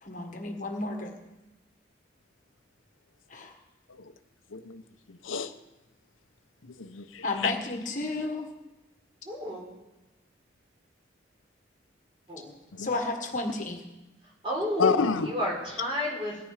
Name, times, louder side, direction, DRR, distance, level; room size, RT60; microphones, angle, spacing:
voice 1, 0.0-1.1 3.3-3.5 7.2-8.5 12.8-13.8, left 2 dB, 40° left, 3 dB, 1.5 m, -32 dB
voice 2, 4.5-4.8 5.1-5.5 6.8-7.5 12.7-12.9 14.8-15.3, left 5 dB, 85° left, 10 dB, 0.9 m, -28 dB
voice 3, 9.2-9.6 12.3-12.5 14.4-16.4, equal, 25° right, -3 dB, 4.1 m, -31 dB
18.0 x 10.5 x 4.9 m, 1.0 s
head